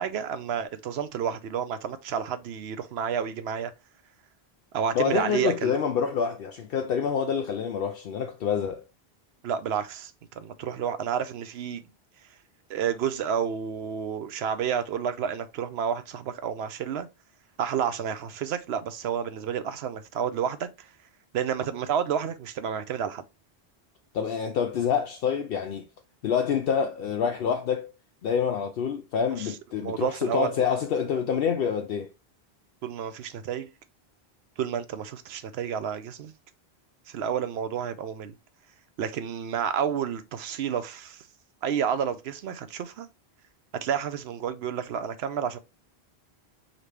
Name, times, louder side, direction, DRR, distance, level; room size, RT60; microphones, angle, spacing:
voice 1, 0.0-3.7 4.7-5.7 9.4-10.1 10.4-11.9 12.7-17.1 17.6-20.7 21.3-23.2 29.4-30.6 32.8-33.7 34.6-36.3 37.1-38.3 39.0-41.2 41.6-43.1 43.8-45.6, right 8 dB, 80° right, 0.9 m, -30 dB
voice 2, 4.9-8.8 24.1-25.8 26.2-27.9 28.2-32.1, left 7 dB, 70° left, 0.7 m, -27 dB
5.0 x 2.9 x 3.2 m
omnidirectional pair, 1.1 m